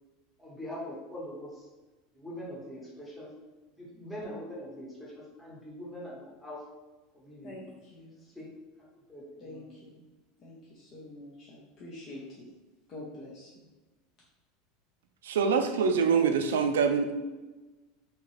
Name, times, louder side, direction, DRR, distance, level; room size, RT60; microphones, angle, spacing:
voice 1, 0.4-1.7 2.1-3.3 3.8-6.6 7.1-7.6 8.2-8.5 9.1-9.7, equal, 5° left, -6 dB, 1.0 m, -42 dB
voice 2, 9.4-9.9 10.4-12.5 12.9-13.5, left 1 dB, 45° left, -5 dB, 0.7 m, -46 dB
voice 3, 15.2-17.1, right 6 dB, 90° right, 7 dB, 0.3 m, -25 dB
2.8 x 2.5 x 3.1 m, 1.2 s
supercardioid pair, 110°, 0 cm